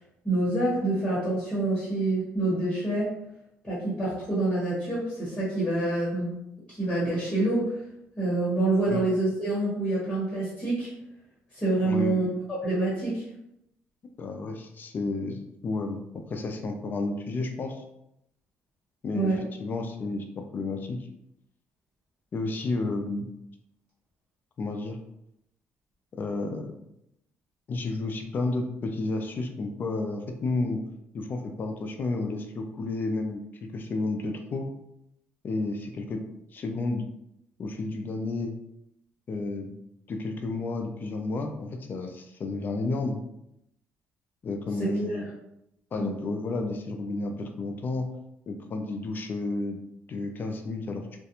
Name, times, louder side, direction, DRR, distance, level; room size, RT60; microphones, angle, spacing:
voice 1, 0.2-3.1 3.6-6.4 6.8-7.8 8.2-10.9 11.5-12.3 12.6-13.2 19.1-19.4 45.1-45.2 46.0-46.1, right 2 dB, 15° left, -9 dB, 1.1 m, -26 dB
voice 2, 11.8-12.2 14.2-16.0 16.3-17.8 19.0-19.3 19.6-21.0 22.3-23.3 24.6-25.0 26.2-26.8 27.7-30.8 31.1-34.7 35.4-36.2 36.5-37.1 37.6-38.6 39.3-39.8 40.1-43.2 44.4-45.3 45.9-48.1 48.5-49.8 50.1-51.1, left 3 dB, 40° left, 5 dB, 0.4 m, -31 dB
2.4 x 2.1 x 2.8 m, 0.81 s
cardioid pair, 120°, 5 cm